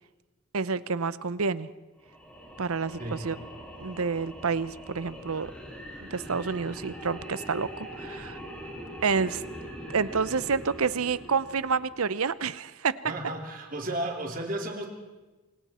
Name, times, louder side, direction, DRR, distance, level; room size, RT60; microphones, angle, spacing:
voice 1, 0.5-1.7 2.6-3.4 3.8-5.5 6.0-8.4 9.0-9.4 9.9-12.9, right 5 dB, 85° right, 16 dB, 0.8 m, -29 dB
sound 1, 2.0-12.3, equal, 5° left, 5.0 m, -42 dB
voice 2, 13.0-14.9, right 1 dB, 40° right, 1 dB, 3.2 m, -33 dB
28.5 x 26.0 x 4.4 m, 1.2 s
head